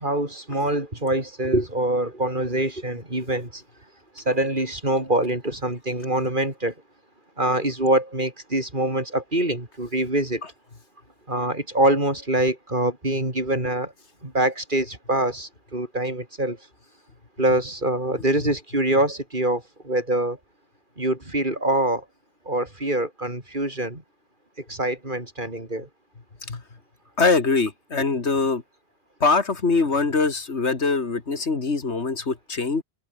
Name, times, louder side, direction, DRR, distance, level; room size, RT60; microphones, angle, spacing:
voice 1, 0.0-3.6 4.2-6.7 7.4-10.4 11.3-13.9 14.2-16.6 17.4-20.4 21.0-22.0 22.5-24.0 24.7-25.9, right 1 dB, 50° right, 5.3 m, -24 dB
voice 2, 27.2-28.6 29.2-32.8, left 4 dB, 85° left, 2.6 m, -23 dB
omnidirectional pair, 1.1 m